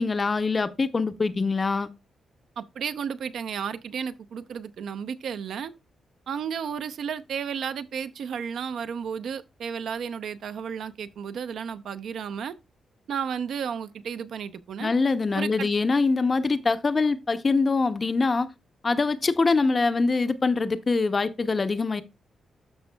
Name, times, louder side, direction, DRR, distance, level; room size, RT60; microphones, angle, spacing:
voice 1, 0.0-1.9 14.8-18.5 18.8-22.0, left 4 dB, 25° left, 0.6 m, -24 dB
voice 2, 2.6-5.7 6.3-12.5 13.1-14.9 15.3-15.7, right 7 dB, 65° right, 0.6 m, -33 dB
12.5 x 6.2 x 2.2 m
wide cardioid pair, 175°, 0 cm